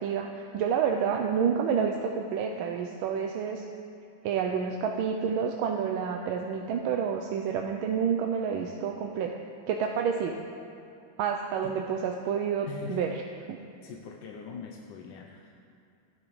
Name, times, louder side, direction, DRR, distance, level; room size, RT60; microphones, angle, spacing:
voice 1, 0.0-3.6 4.2-9.4 9.7-10.4 11.2-13.2 13.5-13.6, right 7 dB, 90° right, 3 dB, 1.4 m, -29 dB
voice 2, 12.6-13.1 13.6-15.5, left 6 dB, 70° left, 1 dB, 1.3 m, -42 dB
15.5 x 11.0 x 3.1 m, 2.6 s
omnidirectional pair, 2.2 m